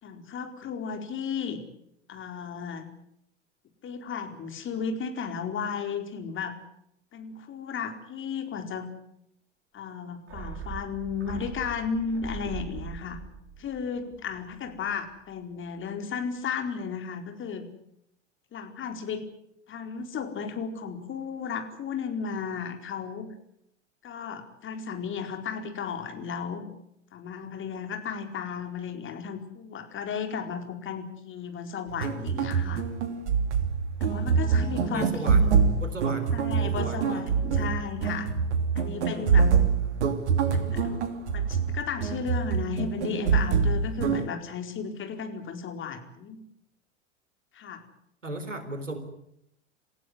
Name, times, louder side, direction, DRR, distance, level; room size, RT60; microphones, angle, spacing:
voice 1, 0.0-1.6 2.1-2.9 3.8-6.6 7.1-8.9 9.7-13.2 13.6-17.7 18.5-19.3 19.7-23.3 24.0-26.7 27.1-32.8 34.0-35.4 36.3-38.3 38.7-39.5 40.5-41.0 41.3-46.4 47.5-47.8, left 6 dB, 35° left, 6 dB, 4.5 m, -34 dB
sound 1, 10.3-14.9 15.2-15.3, right 6 dB, 35° right, 5.4 m, -41 dB
sound 2, 31.9-44.2, right 6 dB, 70° right, 3.1 m, -25 dB
voice 2, 34.6-35.5 35.8-36.3 36.6-37.7 39.1-39.3 48.2-49.0, right 1 dB, 90° right, 10 dB, 3.9 m, -37 dB
28.5 x 16.0 x 9.8 m, 0.77 s
figure-of-eight pair, 80°, 36 cm